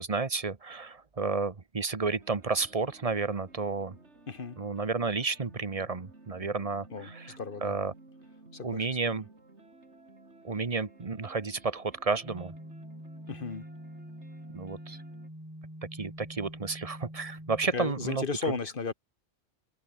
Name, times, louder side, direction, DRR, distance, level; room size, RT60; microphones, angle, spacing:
voice 1, 0.0-4.0 4.6-7.9 8.6-9.3 10.4-12.5 14.5-15.0 15.9-18.2, right 4 dB, 35° right, 1.2 m, -31 dB
sound 1, 2.2-15.3, right 2 dB, 80° right, 4.1 m, -55 dB
voice 2, 4.3-4.6 6.9-7.1 7.4-7.8 8.5-9.1 13.3-13.6 17.7-18.9, left 5 dB, 50° left, 1.5 m, -35 dB
sound 2, 12.2-17.7, equal, 15° right, 7.6 m, -45 dB
omnidirectional pair, 1.2 m